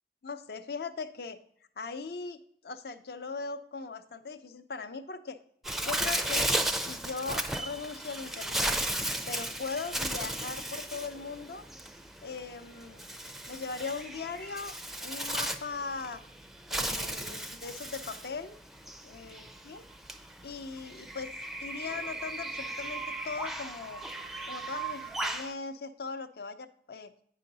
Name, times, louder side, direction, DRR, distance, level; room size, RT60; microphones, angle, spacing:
voice 1, 0.2-1.4 1.8-2.4 2.6-5.4 5.8-8.8 9.3-11.7 12.2-13.0 13.5-16.2 16.7-18.6 19.0-19.8 20.4-21.3 21.6-24.0 24.5-27.1, left 4 dB, 60° left, 10 dB, 0.6 m, -39 dB
Bird, 5.6-25.5, right 1 dB, ahead, 0.4 m, -35 dB
9.1 x 5.7 x 3.9 m, 0.65 s
head